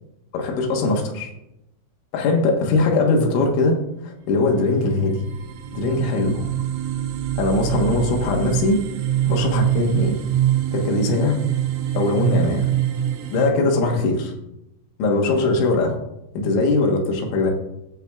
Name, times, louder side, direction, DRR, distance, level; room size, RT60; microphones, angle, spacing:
voice 1, 0.3-1.3 2.1-3.8 4.0-5.2 5.7-6.4 7.4-8.8 9.3-10.2 10.7-11.4 12.0-12.7 13.3-14.3 15.0-16.0 16.4-17.5, left 3 dB, 75° left, 1 dB, 3.5 m, -20 dB
sound 1, 4.5-4.6 5.0-13.5, right 12 dB, 80° right, 3.7 m, -24 dB
19.0 x 6.7 x 2.4 m, 0.87 s
omnidirectional pair, 5.6 m